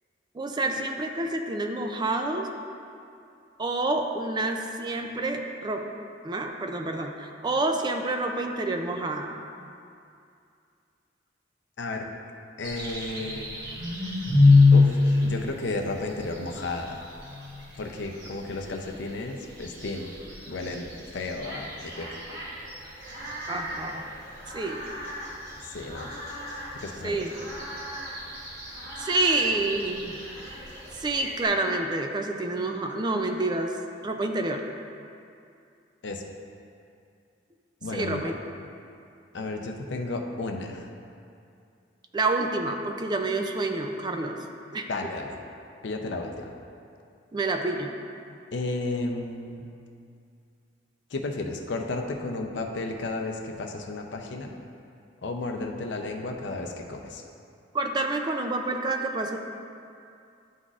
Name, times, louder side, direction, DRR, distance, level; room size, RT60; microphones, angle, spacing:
voice 1, 0.3-2.5 3.6-5.9 6.2-9.3 23.5-24.1 24.5-24.8 27.0-27.3 29.0-30.1 30.9-34.6 37.9-38.3 42.1-44.4 44.7-44.9 47.3-48.0 57.7-59.4, right 2 dB, 25° right, 4 dB, 0.4 m, -28 dB
voice 2, 12.6-13.5 14.7-14.9 15.2-17.0 17.8-20.1 20.5-20.9 21.1-22.2 25.6-26.1 26.7-27.3 36.0-36.2 37.8-38.2 39.3-40.9 44.9-45.4 45.8-46.5 48.5-49.7 51.1-54.5 55.2-57.2, left 2 dB, 70° left, 3 dB, 0.6 m, -33 dB
sound 1, 12.6-31.5, left 3 dB, 60° right, 1.2 m, -28 dB
11.0 x 4.0 x 2.4 m, 2.5 s
head